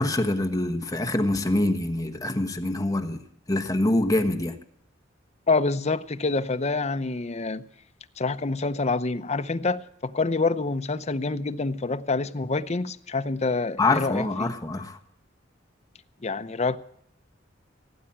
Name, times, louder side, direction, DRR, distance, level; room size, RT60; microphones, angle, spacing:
voice 1, 0.0-3.2 3.5-4.5 13.8-15.0, left 2 dB, 20° left, 1.2 m, -25 dB
voice 2, 5.5-7.7 8.2-14.5 16.2-16.8, left 3 dB, 35° left, 0.7 m, -27 dB
17.0 x 9.1 x 8.7 m
head